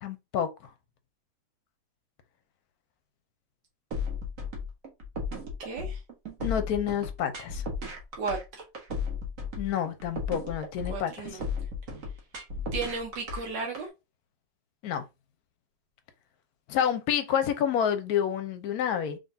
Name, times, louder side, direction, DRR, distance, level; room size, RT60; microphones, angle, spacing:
voice 1, 0.0-0.5 6.4-7.6 9.6-11.3 14.8-15.0 16.7-19.2, left 9 dB, 70° left, 1.0 m, -28 dB
sound 1, 3.9-13.8, left 4 dB, 50° right, 1.4 m, -34 dB
voice 2, 5.6-6.0 8.2-8.6 10.8-11.5 12.7-13.9, right 4 dB, 80° right, 1.6 m, -34 dB
3.8 x 3.3 x 2.6 m
omnidirectional pair, 1.9 m